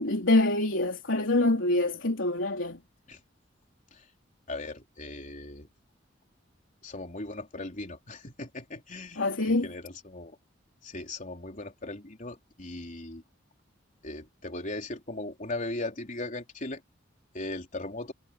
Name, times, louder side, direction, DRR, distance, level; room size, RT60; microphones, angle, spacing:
voice 1, 0.0-2.8 9.2-9.7, left 2 dB, 80° left, 3.4 m, -25 dB
voice 2, 4.5-5.7 6.8-10.4 10.8-13.2 14.0-16.8 17.3-18.1, left 2 dB, 40° left, 3.8 m, -38 dB
head